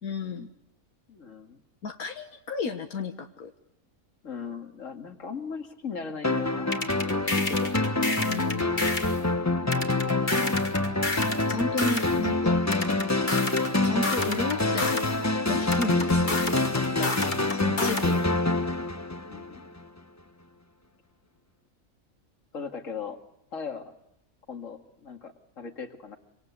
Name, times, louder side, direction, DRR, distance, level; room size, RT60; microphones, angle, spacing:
voice 1, 0.0-0.5 1.8-3.5 8.2-8.7 11.5-12.6 13.8-16.4 16.7-17.2 17.5-18.4, left 4 dB, 85° left, 5 dB, 1.9 m, -33 dB
voice 2, 1.1-1.6 4.2-7.7 19.3-19.7 22.5-23.2 23.5-23.9 24.5-26.2, left 5 dB, 60° left, 6 dB, 2.6 m, -38 dB
sound 1, 6.2-19.8, left 2 dB, 15° left, 0.8 m, -26 dB
sound 2, 6.7-9.2 9.7-12.2 12.7-15.2 15.7-18.2, left 2 dB, 35° left, 2.6 m, -31 dB
26.5 x 26.0 x 8.3 m, 0.79 s
omnidirectional pair, 1.5 m